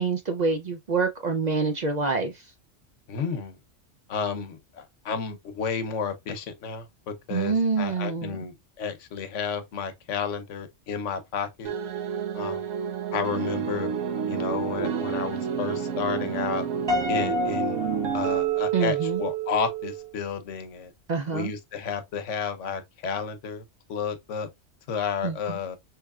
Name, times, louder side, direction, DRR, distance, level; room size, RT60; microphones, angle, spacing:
voice 1, 0.0-2.4 7.3-8.4 18.7-19.2 21.1-21.5 25.2-25.6, right 4 dB, 55° right, 0.5 m, -26 dB
voice 2, 3.1-3.6 4.1-11.7 12.3-12.6 13.1-13.9 14.3-16.7 17.1-17.8 18.1-20.9 21.3-24.5 24.9-25.8, left 6 dB, 75° left, 1.1 m, -32 dB
sound 1, 11.6-20.1, right 8 dB, 85° right, 1.1 m, -29 dB
Piano, 16.9-19.1, left 2 dB, 20° right, 1.1 m, -30 dB
4.7 x 3.1 x 2.3 m
omnidirectional pair, 1.3 m